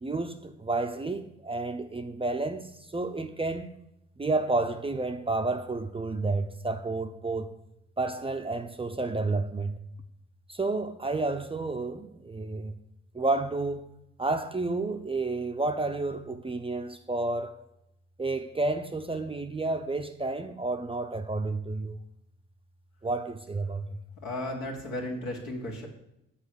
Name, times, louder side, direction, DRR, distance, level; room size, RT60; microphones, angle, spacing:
voice 1, 0.0-3.7 4.2-7.6 8.0-9.8 10.5-12.7 13.1-13.9 14.2-17.5 18.2-22.0 23.0-24.0, right 3 dB, 15° right, 0.6 m, -30 dB
voice 2, 24.2-25.9, left 1 dB, 70° left, 1.9 m, -34 dB
8.0 x 4.8 x 6.8 m
figure-of-eight pair, 45°, 35 cm